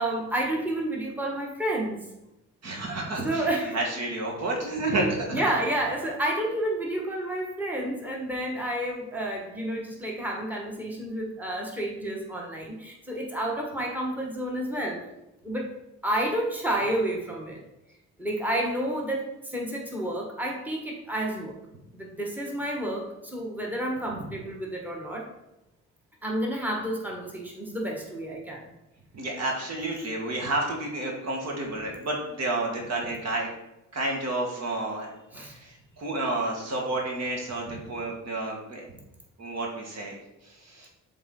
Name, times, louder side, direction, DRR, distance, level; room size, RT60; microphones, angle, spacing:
voice 1, 0.0-2.1 3.2-3.8 5.3-15.0 15.4-15.7 16.0-17.6 18.2-21.5 21.9-25.3 26.2-28.6 35.3-35.5, right 1 dB, 5° right, -2 dB, 1.4 m, -30 dB
voice 2, 2.6-3.5 3.7-5.4 29.1-33.5 33.9-35.1 35.4-38.8 39.4-40.2 40.6-40.9, right 2 dB, 60° right, 0 dB, 1.7 m, -30 dB
7.3 x 3.8 x 3.8 m, 0.91 s
cardioid pair, 90°, 30 cm